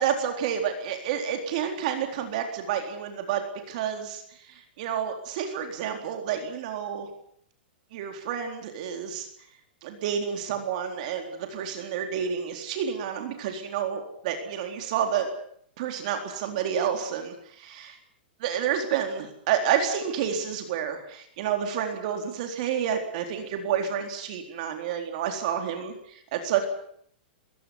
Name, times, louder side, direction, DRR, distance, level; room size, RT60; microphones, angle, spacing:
voice 1, 0.0-3.4 3.7-7.1 7.9-9.3 9.8-15.3 15.8-17.9 18.4-26.7, right 8 dB, 45° right, 5 dB, 4.0 m, -29 dB
23.0 x 16.0 x 9.5 m, 0.65 s
supercardioid pair, 160°, 5 cm